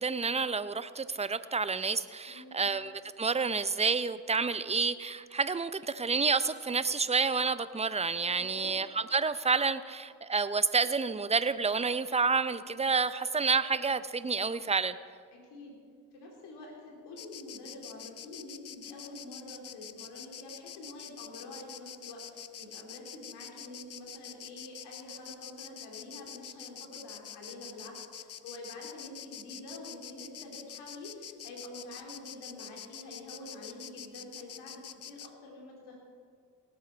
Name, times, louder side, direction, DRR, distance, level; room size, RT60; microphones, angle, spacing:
voice 1, 0.0-2.9 3.2-15.0, right 4 dB, 15° right, 14 dB, 0.6 m, -29 dB
voice 2, 2.3-2.7 8.2-8.7 15.3-15.8 16.1-36.0, left 2 dB, 80° left, -1 dB, 3.1 m, -47 dB
Insect, 17.2-35.3, left 9 dB, 40° left, 0.6 m, -46 dB
18.0 x 8.9 x 4.4 m, 2.1 s
hypercardioid pair, 45°, 40 cm